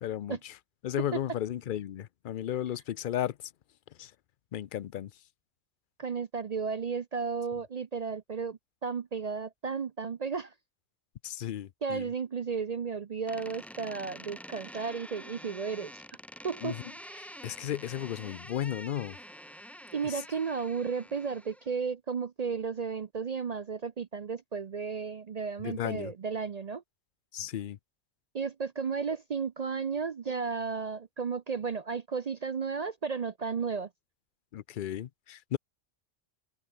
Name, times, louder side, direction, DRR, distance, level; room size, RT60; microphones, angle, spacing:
voice 1, 0.0-0.5 0.8-3.3 4.0-4.1 4.5-5.1 11.2-12.1 16.6-16.8 17.4-19.2 25.6-26.1 27.3-27.8 34.5-35.6, left 11 dB, 55° left, 0.6 m, -34 dB
voice 2, 6.0-10.5 11.8-16.0 16.4-17.3 19.9-26.8 28.3-33.9, right 5 dB, 45° right, 0.5 m, -34 dB
Door, 13.3-21.8, equal, ahead, 0.8 m, -47 dB
omnidirectional pair, 1.2 m